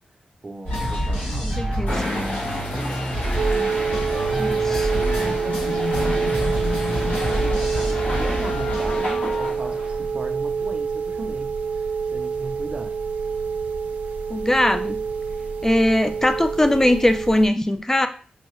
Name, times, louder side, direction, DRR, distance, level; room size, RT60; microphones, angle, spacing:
voice 1, 0.4-3.1 3.8-4.8 5.2-12.9, right 2 dB, 35° right, 4 dB, 0.5 m, -38 dB
sound 1, 0.6-9.5, equal, 90° left, 1.8 m, -27 dB
voice 2, 1.6-1.9 4.4-5.0 14.3-15.0 15.6-18.1, left 1 dB, 15° left, 9 dB, 0.4 m, -20 dB
sound 2, 1.9-10.1, left 1 dB, 75° left, 1.1 m, -31 dB
sound 3, 3.4-17.5, right 5 dB, 90° right, 0.5 m, -26 dB
5.5 x 2.1 x 3.1 m, 0.41 s
cardioid pair, 65°, 3 cm